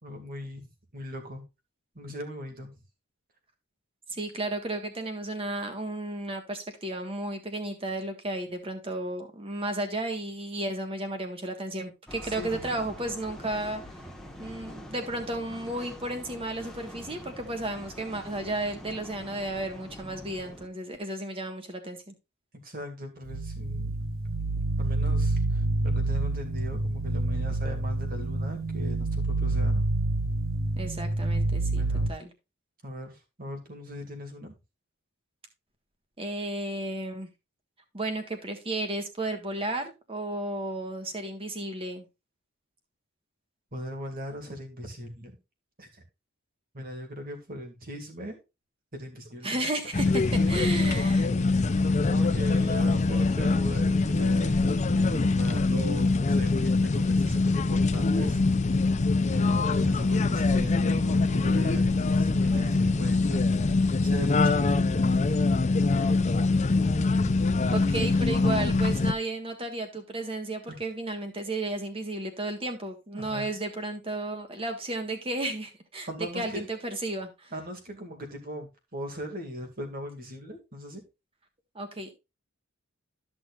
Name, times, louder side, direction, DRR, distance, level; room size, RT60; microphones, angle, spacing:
voice 1, 0.0-1.4 1.9-2.7 12.2-12.9 22.6-24.1 24.8-29.9 31.8-32.1 32.8-34.6 43.7-45.4 45.8-46.0 46.7-48.4 48.9-49.6 49.9-50.7 52.1-58.4 59.3-63.5 64.0-64.8 70.7-70.8 73.1-73.5 76.1-76.6 77.5-81.0, equal, 40° right, 4 dB, 2.3 m, -39 dB
voice 2, 4.1-13.8 14.4-22.1 30.8-31.8 32.1-32.3 36.2-37.3 37.9-42.1 49.4-51.3 67.7-76.1 76.3-77.5 81.7-82.1, right 2 dB, 25° right, 6 dB, 1.6 m, -33 dB
sound 1, 12.1-20.7, equal, ahead, 1.2 m, -45 dB
sound 2, 23.3-32.1, right 2 dB, 70° right, 1.3 m, -28 dB
sound 3, 49.9-69.1, left 3 dB, 35° left, 0.5 m, -24 dB
13.0 x 6.2 x 2.5 m, 0.25 s
head